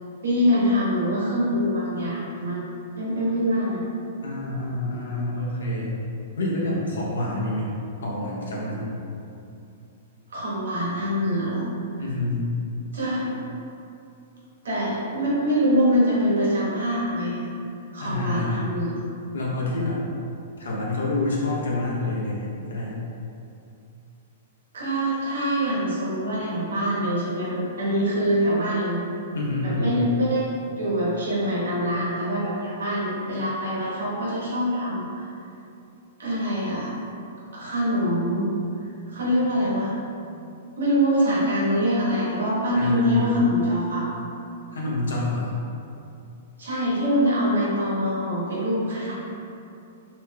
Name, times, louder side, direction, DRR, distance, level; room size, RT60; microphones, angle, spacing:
voice 1, 0.2-2.6 3.0-3.8 10.3-11.7 12.9-13.4 14.6-17.5 17.9-19.0 24.7-29.0 29.6-35.2 36.2-36.9 37.5-38.5 39.1-39.9 40.8-44.0 46.6-49.1, equal, 85° right, -7 dB, 1.1 m, -24 dB
voice 2, 4.2-5.9 6.4-7.7 8.0-9.0 12.0-12.4 18.0-18.6 19.3-20.0 20.6-23.0 29.3-30.0 42.7-43.3 44.7-45.5, left 2 dB, 85° left, -4 dB, 0.7 m, -27 dB
2.9 x 2.2 x 3.3 m, 2.6 s
hypercardioid pair, 130°, 0 cm